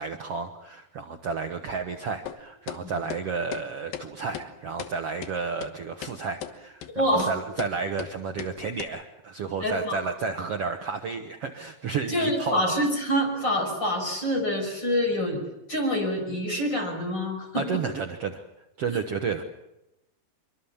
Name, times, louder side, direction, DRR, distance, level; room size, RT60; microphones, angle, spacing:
voice 1, 0.0-12.6 17.6-18.4 18.8-19.4, right 5 dB, 65° right, 5 dB, 1.5 m, -32 dB
sound 1, 2.3-2.4 2.7-2.8 3.1-3.2 3.5-3.6 3.9-4.1 4.3-4.5 4.8-4.9 5.2-5.3 5.6-5.7 6.0-6.1 6.4-6.5 6.8-6.9 7.2-7.3 7.6-7.7 8.0-8.1 8.4-8.5 8.8-8.9, left 10 dB, 70° left, 3.0 m, -36 dB
voice 2, 7.0-7.3 9.6-10.0 12.1-15.4 15.7-17.8, equal, 25° left, 2 dB, 6.8 m, -26 dB
26.0 x 23.5 x 7.3 m, 0.89 s
omnidirectional pair, 4.6 m